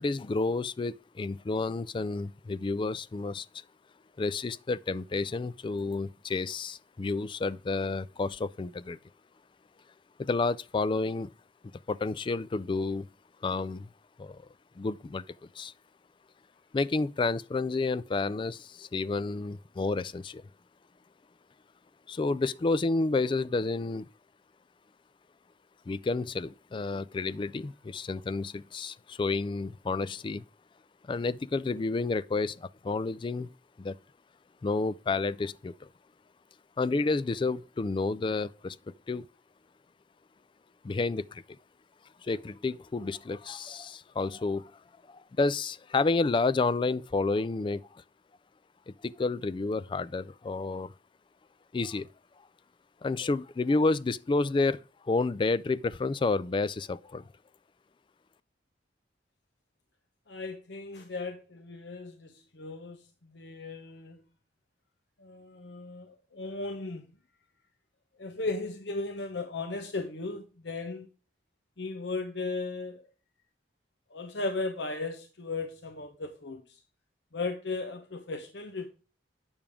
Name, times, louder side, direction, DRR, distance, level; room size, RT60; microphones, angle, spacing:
voice 1, 0.0-3.5 4.2-9.0 10.2-11.3 11.9-13.1 13.4-13.9 14.2-14.5 14.8-15.2 15.5-15.7 16.7-20.4 22.1-24.1 25.9-30.4 31.1-33.5 33.8-34.0 34.6-35.9 36.8-38.8 39.1-39.3 40.8-41.4 42.2-44.8 45.1-48.0 48.9-50.9 51.7-52.1 53.0-57.2, left 3 dB, 25° left, 0.3 m, -30 dB
voice 2, 60.3-63.0 63.3-64.2 65.2-67.1 68.2-71.1 71.8-73.0 74.1-76.8 77.3-78.9, left 3 dB, 70° left, 0.9 m, -36 dB
8.8 x 6.9 x 3.5 m
head